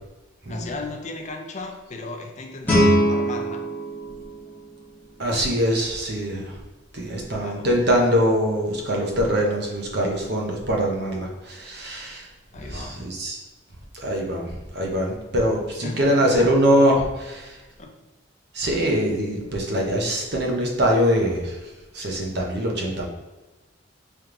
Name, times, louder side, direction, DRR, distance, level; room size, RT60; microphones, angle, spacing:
voice 1, 0.5-3.6 7.3-7.8 12.5-13.0 15.8-16.5 17.8-17.9, left 3 dB, 35° left, 3 dB, 0.5 m, -36 dB
Guitar, 2.6-5.4, equal, 10° left, 1.1 m, -23 dB
voice 2, 5.2-6.6 6.9-12.3 12.6-13.4 14.0-17.6 18.5-21.6 21.9-23.1, equal, 55° right, -1 dB, 0.8 m, -23 dB
3.4 x 3.1 x 3.7 m, 1.1 s
head